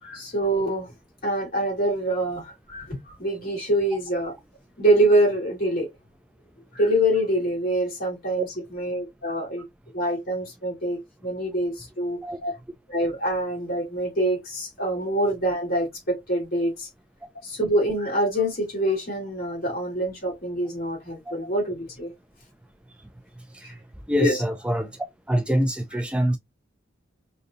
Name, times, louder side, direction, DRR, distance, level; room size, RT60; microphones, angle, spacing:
voice 1, 0.0-0.9 1.2-4.3 4.8-5.9 6.7-8.5 8.7-9.6 9.9-12.5 12.9-16.9 17.4-22.1 23.6-23.7 24.2-24.4, right 1 dB, 50° left, 3.0 m, -25 dB
voice 2, 24.1-24.9 25.3-26.4, equal, 5° right, 0.3 m, -25 dB
5.0 x 2.7 x 2.6 m
head